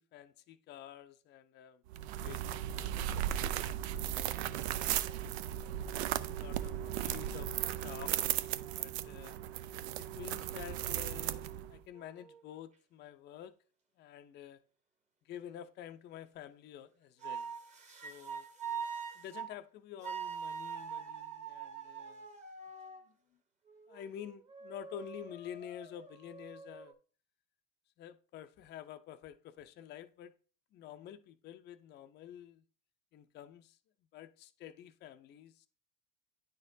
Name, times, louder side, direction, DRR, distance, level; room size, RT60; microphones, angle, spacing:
voice 1, 0.0-1.8 2.2-3.7 4.7-5.4 6.1-8.1 8.8-9.4 10.0-13.5 14.0-14.6 15.2-17.5 17.8-18.5 19.1-22.3 23.1-23.2 23.9-26.9 28.0-30.3 30.7-32.6 33.1-33.8 34.1-35.7, left 10 dB, 35° left, 0.4 m, -49 dB
sound 1, 1.9-11.8, right 11 dB, 90° right, 0.5 m, -36 dB
sound 2, 11.9-12.6 17.2-19.5 20.0-23.0 23.7-26.9, right 6 dB, 20° right, 1.0 m, -44 dB
9.6 x 4.3 x 2.6 m
supercardioid pair, 115°, 31 cm